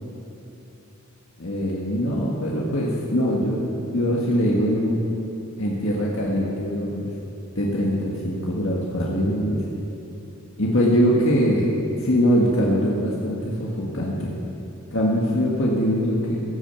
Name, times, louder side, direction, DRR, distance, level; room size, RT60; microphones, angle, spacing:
voice 1, 1.4-5.0 5.6-7.1 7.5-9.6 10.6-11.7 12.0-14.3 14.9-16.4, equal, 65° left, -4 dB, 1.7 m, -22 dB
16.5 x 9.0 x 7.0 m, 2.9 s
head